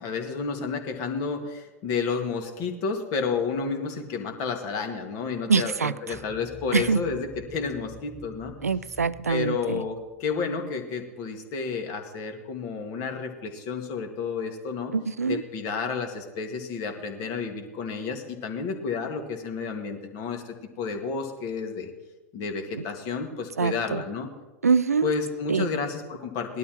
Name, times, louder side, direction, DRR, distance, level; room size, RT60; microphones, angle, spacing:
voice 1, 0.0-8.5 9.3-14.9 15.3-21.9 22.3-24.3 25.0-26.6, left 5 dB, 45° left, 5 dB, 2.0 m, -31 dB
voice 2, 5.5-6.2 6.7-7.0 8.6-9.8 14.9-15.4 22.8-22.9 23.6-24.0 24.6-25.1 25.5-25.7, right 5 dB, 85° right, 18 dB, 0.4 m, -24 dB
sound 1, 6.1-10.8, left 2 dB, 5° left, 1.3 m, -47 dB
19.0 x 12.0 x 3.0 m, 1.2 s
figure-of-eight pair, 90°, 8 cm